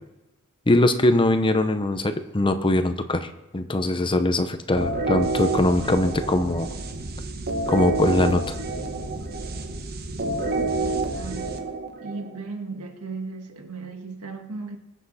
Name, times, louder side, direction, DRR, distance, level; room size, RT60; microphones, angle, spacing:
voice 1, 0.7-6.7 7.7-8.5, left 1 dB, 25° left, 0.8 m, -22 dB
sound 1, 4.8-12.4, right 3 dB, 45° right, 1.2 m, -28 dB
voice 2, 10.2-11.7 12.0-14.8, right 4 dB, 85° right, 1.7 m, -37 dB
21.5 x 7.8 x 4.2 m
head